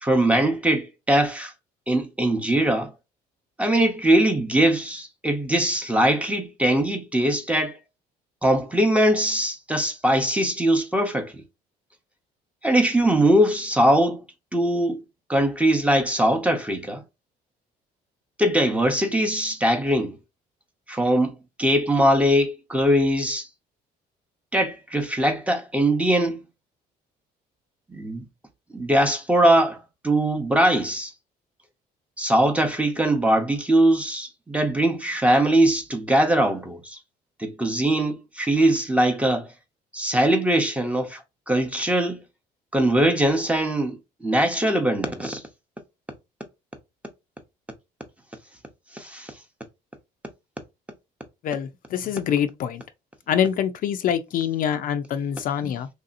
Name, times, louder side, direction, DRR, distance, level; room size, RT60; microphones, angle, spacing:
voice 1, 0.0-1.5 1.9-2.9 3.6-7.8 8.4-11.4 12.6-14.2 14.5-15.0 15.3-17.0 18.4-20.1 20.9-23.5 24.5-26.4 27.9-28.3 28.7-31.1 32.2-37.0 37.4-39.5 39.9-42.2 42.7-44.0 44.2-45.4 48.9-49.3, right 1 dB, 10° right, 0.7 m, -21 dB
voice 2, 51.4-52.8 53.3-55.9, left 9 dB, 55° left, 0.4 m, -25 dB
3.2 x 2.7 x 2.5 m
cardioid pair, 110°, 17 cm